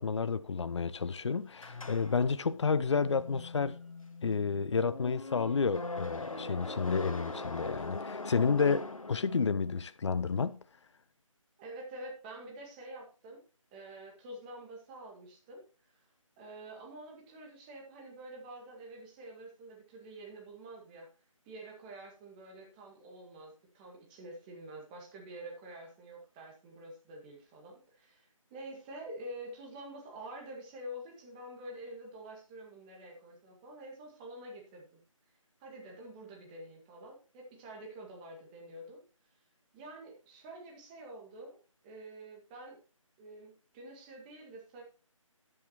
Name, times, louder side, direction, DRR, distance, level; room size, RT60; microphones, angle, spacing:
voice 1, 0.0-3.8 4.2-10.6, left 5 dB, 55° left, 0.6 m, -30 dB
sound 1, 1.6-9.7, left 3 dB, 80° left, 1.6 m, -42 dB
voice 2, 11.6-13.4 13.7-16.0 16.4-21.1 21.5-35.0 35.6-39.0 39.7-41.6 41.8-42.8 43.2-44.8, right 1 dB, 15° right, 1.9 m, -47 dB
13.0 x 8.7 x 2.9 m
figure-of-eight pair, 155°, 17 cm